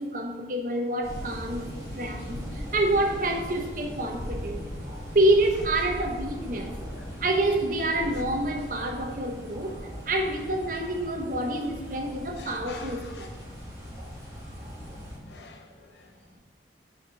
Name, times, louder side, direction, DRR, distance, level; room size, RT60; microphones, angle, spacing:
voice 1, 0.0-1.6 1.9-4.7 5.1-6.7 7.2-9.8 10.0-13.3, right 1 dB, 50° right, 3 dB, 1.0 m, -27 dB
sound 1, 1.0-15.2, equal, 15° right, 2.1 m, -39 dB
voice 2, 12.4-13.3 15.2-16.1, left 4 dB, 75° left, 2 dB, 1.1 m, -47 dB
6.5 x 5.1 x 5.5 m, 1.3 s
head